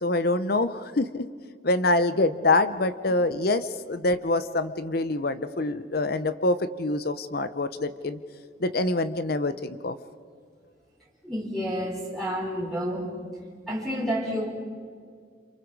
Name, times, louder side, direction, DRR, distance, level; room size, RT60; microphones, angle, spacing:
voice 1, 0.0-1.2 1.6-8.2 8.6-10.0, left 2 dB, 50° left, 12 dB, 0.7 m, -25 dB
voice 2, 11.2-13.1 13.7-14.5, equal, ahead, -4 dB, 3.5 m, -29 dB
29.0 x 27.5 x 4.7 m, 2.1 s
head